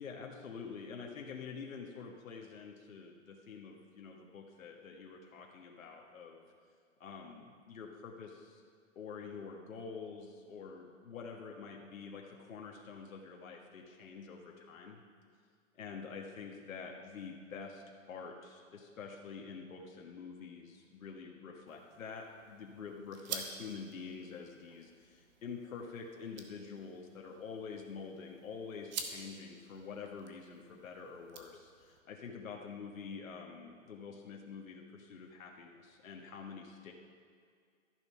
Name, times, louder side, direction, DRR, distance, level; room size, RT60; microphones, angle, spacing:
voice 1, 0.0-6.5 7.0-8.6 8.9-15.0 15.7-36.9, left 5 dB, 85° left, 1 dB, 1.6 m, -47 dB
sound 1, 21.7-32.0, right 6 dB, 35° right, 1.1 m, -49 dB
12.5 x 10.5 x 5.6 m, 2.1 s
hypercardioid pair, 165°, 39 cm